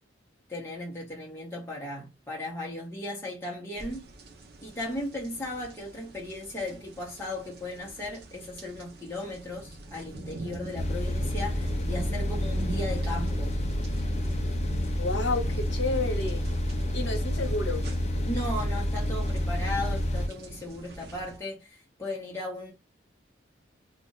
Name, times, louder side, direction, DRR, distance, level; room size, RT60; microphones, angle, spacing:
voice 1, 0.5-4.1 4.6-13.6 18.2-22.7, left 1 dB, 15° left, 0.9 m, -36 dB
sound 1, 3.7-21.4, right 2 dB, 60° right, 0.7 m, -44 dB
sound 2, 10.8-20.3, left 1 dB, 35° left, 0.4 m, -29 dB
voice 2, 15.0-16.4 16.9-17.9, left 2 dB, 75° left, 0.9 m, -30 dB
2.5 x 2.4 x 3.9 m
head